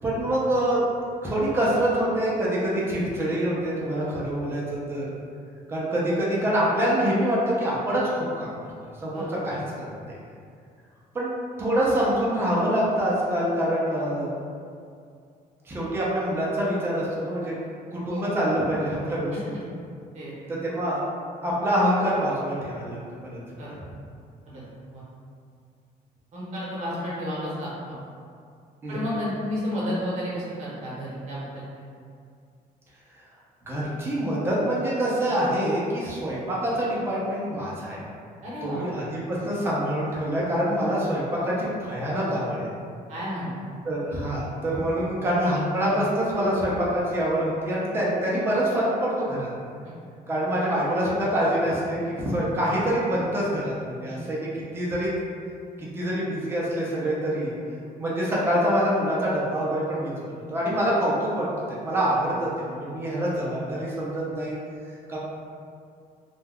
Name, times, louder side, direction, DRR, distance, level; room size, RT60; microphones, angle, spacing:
voice 1, 0.0-0.8 1.2-5.1 5.7-8.5 9.0-10.1 11.1-14.3 15.7-17.5 17.9-19.3 20.5-21.0 21.4-23.6 24.5-24.6 28.8-29.0 33.7-38.0 38.6-42.7 43.9-49.5 50.3-54.5 54.7-55.1 55.8-57.5 58.0-60.1 60.5-61.5 61.8-64.6 65.1-65.2, equal, 15° right, -6 dB, 0.4 m, -25 dB
voice 2, 26.3-28.0 28.9-31.6 38.4-38.8 40.7-40.8 43.1-43.5 49.8-49.9 54.1-54.2, equal, 50° right, -7 dB, 0.8 m, -32 dB
2.2 x 2.2 x 3.4 m, 2.3 s
cardioid pair, 175°, 16 cm